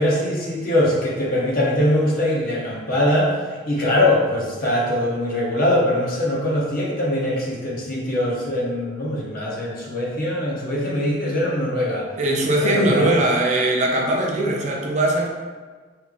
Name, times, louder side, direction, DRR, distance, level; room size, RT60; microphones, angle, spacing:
voice 1, 0.0-12.1 12.6-13.1, left 1 dB, 50° left, -3 dB, 0.8 m, -22 dB
voice 2, 12.2-15.3, right 1 dB, 40° right, 0 dB, 0.5 m, -20 dB
4.9 x 3.1 x 2.4 m, 1.4 s
head